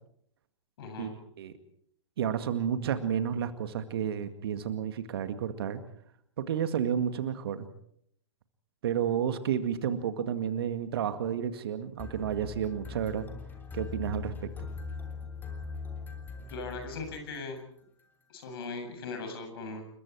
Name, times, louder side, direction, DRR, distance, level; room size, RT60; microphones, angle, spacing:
voice 1, 0.8-1.1 16.5-17.6 18.3-19.8, left 3 dB, 50° left, 6 dB, 7.7 m, -39 dB
voice 2, 2.2-5.8 6.4-7.7 8.8-13.3 13.7-14.7, right 8 dB, 55° right, 9 dB, 2.0 m, -31 dB
sound 1, 12.0-17.7, left 5 dB, 10° left, 3.3 m, -41 dB
29.0 x 22.5 x 4.7 m, 0.68 s
figure-of-eight pair, 115°, 16 cm